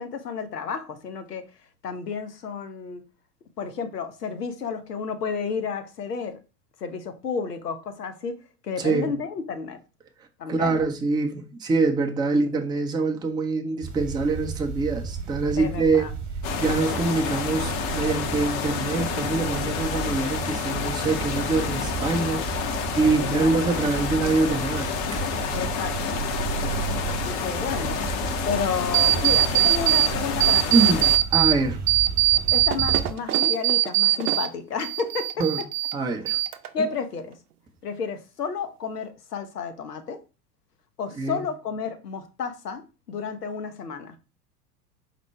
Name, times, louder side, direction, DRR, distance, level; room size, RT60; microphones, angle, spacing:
voice 1, 0.0-1.4 1.8-3.0 3.6-6.4 6.8-8.4 8.6-9.8 10.4-10.8 15.6-16.1 23.2-23.7 25.5-26.2 27.0-28.0 28.5-30.6 32.5-35.4 36.7-37.3 37.8-40.2 41.0-44.1, left 5 dB, 85° left, 0.8 m, -31 dB
voice 2, 8.8-9.1 10.5-16.1 16.6-22.4 23.0-25.3 30.7-31.0 31.3-31.8 32.3-32.4 35.4-35.6 35.9-36.4 41.2-41.4, right 3 dB, 10° right, 0.5 m, -24 dB
sound 1, 13.8-33.1, right 5 dB, 40° right, 1.1 m, -33 dB
sound 2, 16.4-31.2, left 7 dB, 45° left, 0.7 m, -30 dB
sound 3, 28.9-30.1 30.4-31.5 31.9-34.5 34.8-35.9 36.3-36.9, right 16 dB, 75° right, 0.6 m, -21 dB
4.2 x 2.1 x 4.5 m
figure-of-eight pair, 90°, 46 cm